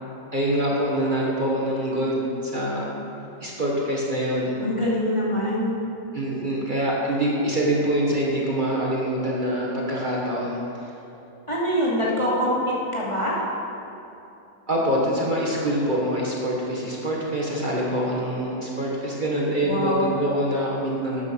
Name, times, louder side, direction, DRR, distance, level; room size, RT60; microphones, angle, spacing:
voice 1, 0.3-2.9 3.4-4.5 6.1-10.6 14.7-21.2, right 1 dB, 40° right, -4 dB, 1.8 m, -25 dB
voice 2, 4.6-5.8 11.5-13.4 19.6-20.1, equal, 25° left, -7 dB, 2.8 m, -24 dB
13.0 x 9.7 x 6.2 m, 2.9 s
omnidirectional pair, 1.3 m